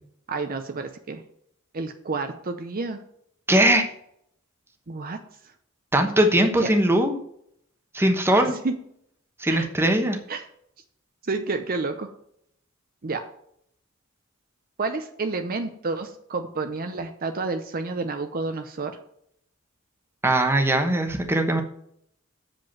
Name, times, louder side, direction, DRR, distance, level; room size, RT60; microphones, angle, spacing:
voice 1, 0.3-1.2 1.7-3.0 4.9-5.2 6.6-6.7 8.3-8.8 9.5-9.7 10.3-10.4 11.2-12.1 13.0-13.3 14.8-19.0, right 3 dB, 45° right, 7 dB, 0.7 m, -30 dB
voice 2, 3.5-3.9 5.9-7.2 7.9-8.6 9.4-10.2 20.2-21.6, right 1 dB, 10° right, 5 dB, 1.1 m, -20 dB
7.7 x 5.2 x 7.5 m, 0.70 s
head